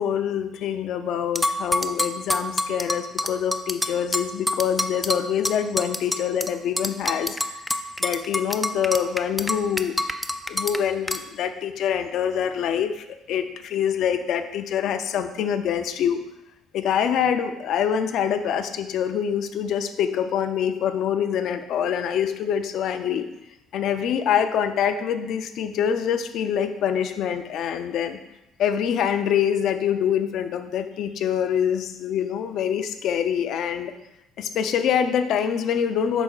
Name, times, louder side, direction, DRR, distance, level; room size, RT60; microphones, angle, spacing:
voice 1, 0.0-7.4 8.0-9.9 10.5-16.2 16.7-23.3 23.7-28.2 28.6-33.9 34.4-36.2, left 8 dB, 65° left, 8 dB, 0.5 m, -25 dB
sound 1, 1.4-6.5 6.8-10.8 11.1-11.2, left 1 dB, 5° left, 0.3 m, -26 dB
7.9 x 5.7 x 2.4 m, 0.90 s
cardioid pair, 140°, 0 cm